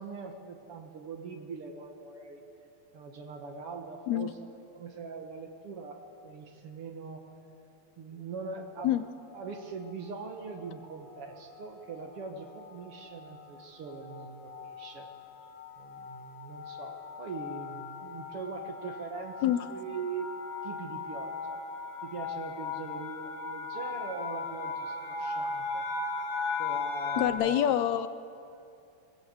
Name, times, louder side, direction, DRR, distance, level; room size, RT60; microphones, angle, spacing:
voice 1, 0.0-2.5 2.9-7.2 8.0-9.0 9.3-15.1 15.8-20.4 20.6-21.6 22.0-25.9 26.6-27.7, right 5 dB, 55° right, 4 dB, 2.2 m, -42 dB
sound 1, 9.2-9.6 10.4-10.8 11.1-11.3 11.5-27.3, left 4 dB, 55° left, 2.3 m, -38 dB
voice 2, 27.2-28.1, left 11 dB, 80° left, 13 dB, 1.9 m, -26 dB
20.5 x 19.5 x 8.0 m, 2.6 s
omnidirectional pair, 3.3 m